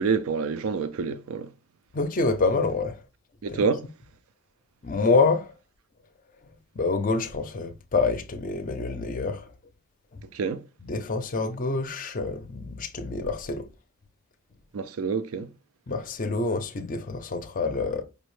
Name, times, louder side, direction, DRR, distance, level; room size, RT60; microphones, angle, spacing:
voice 1, 0.0-1.5 3.4-3.9 10.2-10.6 14.7-15.5, right 5 dB, 70° right, 0.4 m, -27 dB
voice 2, 1.9-3.0 3.5-3.6 4.8-5.5 6.7-9.5 10.9-13.7 15.9-18.0, left 3 dB, 35° left, 0.5 m, -27 dB
5.1 x 2.1 x 3.1 m
head